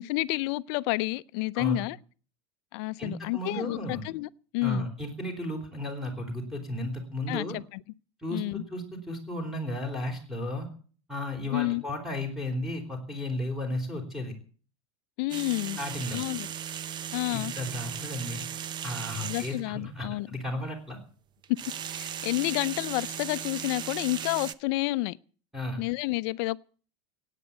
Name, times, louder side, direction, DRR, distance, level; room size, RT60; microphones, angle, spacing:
voice 1, 0.0-2.0 2.7-4.9 7.3-7.8 8.3-8.6 11.5-11.8 15.2-15.8 16.1-16.5 17.1-17.5 19.2-20.3 21.5-21.6 21.9-25.2 25.8-26.6, left 21 dB, 65° left, 0.6 m, -30 dB
voice 2, 3.0-4.0 4.6-7.6 8.2-10.7 11.1-14.3 15.8-16.2 17.3-18.4 18.8-21.0 25.5-25.8, left 1 dB, 5° right, 4.2 m, -34 dB
sound 1, 15.3-19.6 21.4-24.5, right 9 dB, 30° right, 0.8 m, -37 dB
16.5 x 9.2 x 8.3 m
supercardioid pair, 130°, 14 cm